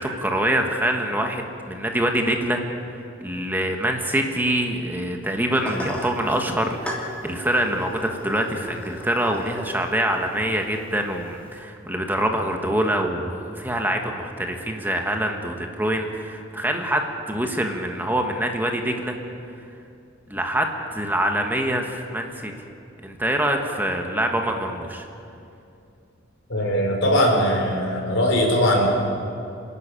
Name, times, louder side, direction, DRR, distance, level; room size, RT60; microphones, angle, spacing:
voice 1, 0.0-2.6 3.2-19.1 20.3-22.5 23.0-25.1, right 1 dB, 10° right, 3 dB, 1.4 m, -25 dB
sound 1, 5.5-11.6, equal, 5° left, 3.0 m, -37 dB
voice 2, 26.5-28.9, equal, 75° left, 0 dB, 4.8 m, -20 dB
27.5 x 11.0 x 8.9 m, 2.6 s
head